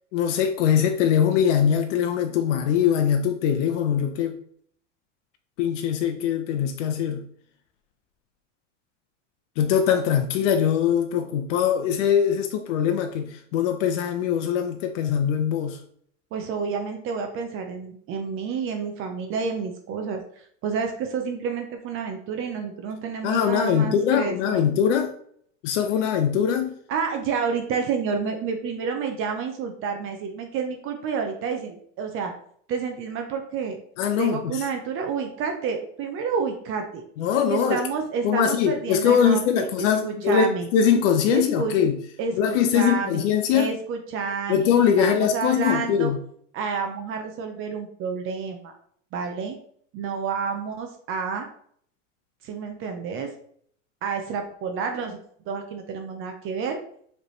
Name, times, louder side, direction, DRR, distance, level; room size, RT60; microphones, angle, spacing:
voice 1, 0.1-4.4 5.6-7.2 9.6-15.8 23.2-25.1 25.6-26.7 34.0-34.6 37.2-37.8 38.2-42.0 42.4-43.8 44.5-46.2, left 8 dB, 65° left, 5 dB, 0.6 m, -22 dB
voice 2, 16.3-20.2 20.6-24.6 26.9-32.3 32.7-33.8 34.2-37.0 37.5-40.7 41.3-41.7 42.2-44.7 45.0-46.1 46.5-48.7 49.1-49.6 49.9-51.5 52.4-53.3 54.0-55.2 55.5-56.8, right 5 dB, 35° right, 4 dB, 0.6 m, -29 dB
4.8 x 3.4 x 3.1 m, 0.63 s
supercardioid pair, 125°, 38 cm